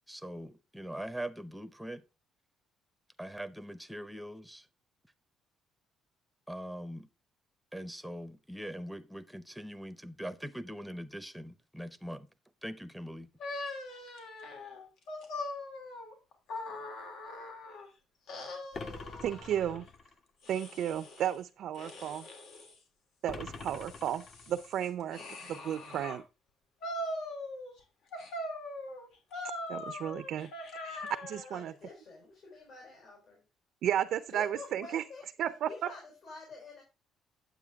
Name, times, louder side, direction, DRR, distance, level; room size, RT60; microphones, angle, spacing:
voice 1, 0.1-2.0 3.2-4.7 6.5-7.1 7.7-12.3 12.6-13.3, equal, ahead, 0.7 m, -42 dB
sound 1, 13.4-17.9 18.3-19.8 20.4-21.4 21.7-22.8 23.3-26.2 26.8-27.8 28.1-31.6, left 1 dB, 80° left, 3.0 m, -42 dB
sound 2, 18.7-20.2 23.3-24.8, left 3 dB, 40° left, 0.9 m, -45 dB
voice 2, 19.2-19.9 20.5-22.3 23.2-26.2 29.7-30.5 30.8-31.7 33.8-35.0 35.4-35.7, right 10 dB, 65° right, 0.5 m, -33 dB
voice 3, 31.5-33.4 34.3-35.3 35.7-36.8, left 3 dB, 55° left, 4.1 m, -48 dB
9.1 x 8.3 x 3.5 m
cardioid pair, 135°, 0 cm